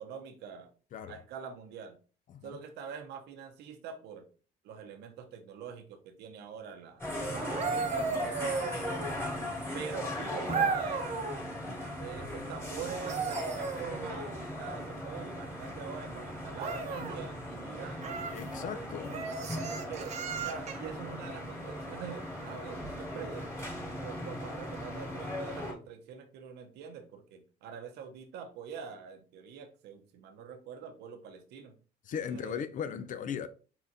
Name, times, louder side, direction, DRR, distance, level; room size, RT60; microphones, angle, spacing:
voice 1, 0.0-0.7 1.1-2.0 2.4-4.3 4.6-7.0 7.4-8.6 9.7-11.1 12.0-18.1 19.1-23.5 23.8-31.7 32.3-32.6, right 7 dB, 80° right, 0.8 m, -45 dB
sound 1, 7.0-25.7, left 1 dB, 15° left, 2.2 m, -39 dB
sound 2, 7.3-9.3 10.5-11.5 12.9-14.5 16.6-17.2 18.0-18.4 19.1-20.9 22.8-23.0, right 5 dB, 40° right, 0.8 m, -35 dB
voice 2, 18.3-19.2 32.1-33.5, left 7 dB, 50° left, 0.5 m, -37 dB
4.5 x 3.6 x 2.6 m
cardioid pair, 110°, 17 cm